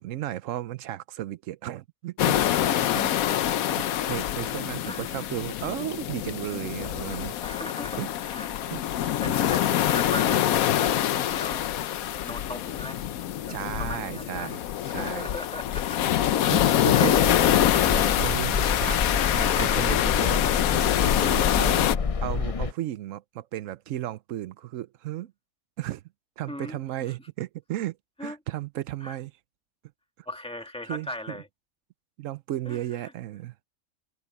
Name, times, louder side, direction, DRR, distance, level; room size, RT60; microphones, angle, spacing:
voice 1, 0.0-2.4 2.9-3.1 3.8-7.3 8.0-8.1 8.7-8.8 9.3-9.4 13.5-14.6 14.9-15.3 16.5-17.2 17.7-19.0 19.3-21.8 22.2-25.3 25.8-26.0 26.4-29.3 30.9-31.4 32.2-33.5, right 13 dB, 70° right, 0.9 m, -34 dB
sound 1, 2.2-22.0, left 11 dB, 75° left, 1.1 m, -25 dB
voice 2, 7.4-8.5 9.0-11.6 12.0-13.1 13.5-14.6 14.9-16.1 16.4-17.8 26.5-26.8 27.1-27.2 28.2-28.4 29.0-29.2 30.3-31.5 32.7-33.1, left 1 dB, 5° left, 2.1 m, -39 dB
sound 2, 17.1-22.7, left 5 dB, 50° left, 0.4 m, -28 dB
omnidirectional pair, 1.5 m